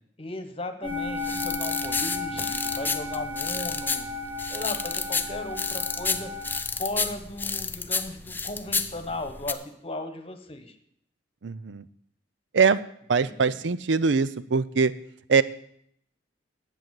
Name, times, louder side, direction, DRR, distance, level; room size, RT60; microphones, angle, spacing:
voice 1, 0.2-4.1 4.5-6.3 6.7-10.8 13.2-13.6, left 1 dB, 30° left, 8 dB, 1.3 m, -36 dB
sound 1, 0.8-6.6, left 3 dB, 30° right, 2.8 m, -34 dB
sound 2, 0.9-9.5, left 4 dB, 10° left, 0.6 m, -31 dB
voice 2, 11.4-11.8 12.5-12.8 13.1-14.9 15.3-15.4, right 5 dB, 70° right, 16 dB, 0.5 m, -22 dB
10.5 x 8.3 x 7.6 m, 0.68 s
head